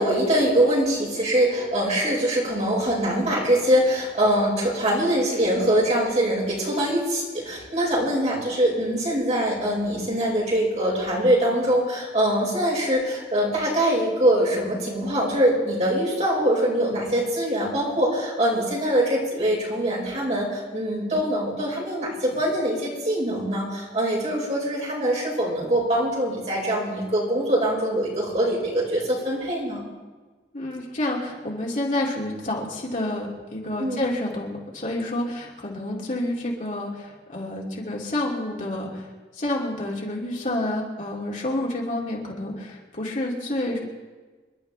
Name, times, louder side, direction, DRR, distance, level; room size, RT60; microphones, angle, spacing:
voice 1, 0.0-29.8 33.8-34.0, right 1 dB, 40° right, -4 dB, 5.7 m, -23 dB
voice 2, 30.5-39.1 39.3-43.8, left 1 dB, 45° left, -3 dB, 2.8 m, -29 dB
28.0 x 11.5 x 3.5 m, 1.3 s
head